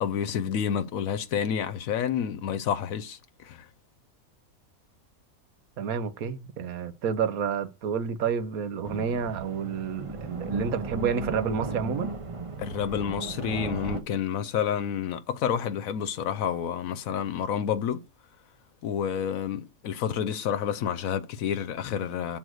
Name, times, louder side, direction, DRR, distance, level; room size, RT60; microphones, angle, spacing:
voice 1, 0.0-3.7 12.6-18.0 18.8-22.4, left 8 dB, 75° left, 1.0 m, -29 dB
voice 2, 5.8-12.1, right 7 dB, 85° right, 1.3 m, -29 dB
sound 1, 8.8-14.0, right 3 dB, 30° right, 0.6 m, -35 dB
7.7 x 3.9 x 6.3 m
omnidirectional pair, 1.5 m